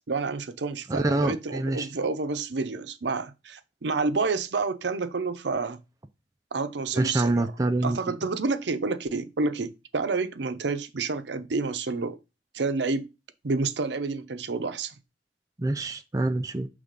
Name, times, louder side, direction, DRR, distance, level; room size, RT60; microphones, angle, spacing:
voice 1, 0.1-5.8 6.5-7.5 7.8-12.2 12.5-13.1 13.4-14.9, right 3 dB, 75° right, 0.6 m, -29 dB
voice 2, 0.9-1.9 6.9-8.0 15.6-16.7, right 2 dB, 20° right, 0.4 m, -26 dB
6.6 x 3.4 x 5.2 m
head